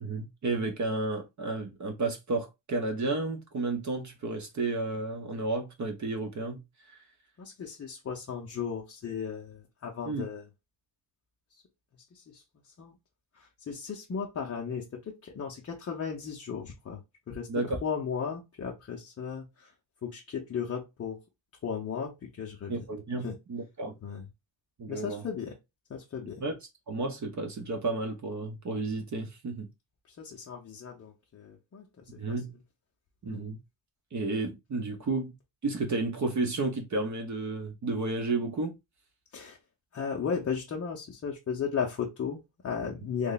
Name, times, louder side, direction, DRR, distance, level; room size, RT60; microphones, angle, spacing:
voice 1, 0.0-6.6 6.9-7.0 10.1-10.2 17.5-17.8 22.7-24.0 24.8-25.2 26.4-26.5 26.9-29.7 32.2-32.5 33.2-33.6 34.1-35.4 35.6-38.7, right 3 dB, 40° right, 0.7 m, -32 dB
voice 2, 7.4-10.5 11.5-11.6 12.1-13.0 13.3-17.0 17.3-19.7 20.0-21.2 21.6-22.9 23.2-23.4 24.0-24.3 24.9-25.6 25.9-26.4 30.1-32.4 33.2-33.4 39.3-39.6 39.9-43.3, left 6 dB, 35° left, 0.6 m, -36 dB
3.2 x 2.1 x 3.8 m
cardioid pair, 140°, 45 cm